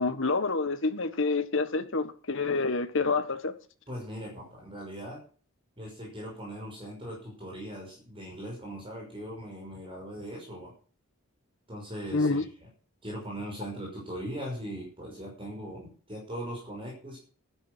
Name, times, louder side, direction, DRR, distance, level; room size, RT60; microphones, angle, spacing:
voice 1, 0.0-3.5 12.1-12.4, left 3 dB, 60° left, 1.5 m, -28 dB
voice 2, 3.9-5.2 5.8-10.7 11.7-12.5 13.0-17.2, equal, 25° right, 5.9 m, -39 dB
13.0 x 10.0 x 6.2 m
head